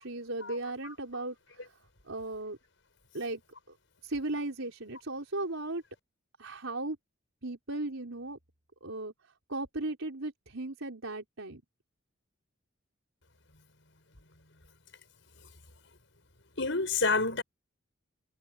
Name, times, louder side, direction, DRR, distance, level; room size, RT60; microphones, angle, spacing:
voice 1, 0.0-1.4 2.1-2.6 3.1-3.4 4.0-5.8 6.4-7.0 7.4-8.4 8.8-9.1 9.5-11.6, right 2 dB, 85° right, 4.4 m, -36 dB
voice 2, 16.6-17.4, left 3 dB, 65° left, 6.3 m, -28 dB
head